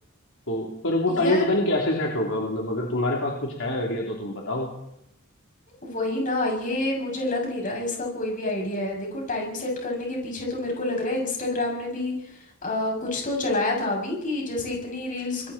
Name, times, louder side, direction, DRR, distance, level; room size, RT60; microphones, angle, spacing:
voice 1, 0.5-4.7, left 1 dB, 65° left, -2 dB, 3.5 m, -25 dB
voice 2, 1.1-1.5 5.8-12.1 12.6-15.5, left 2 dB, 40° left, 0 dB, 7.5 m, -28 dB
27.0 x 21.5 x 4.4 m, 0.81 s
head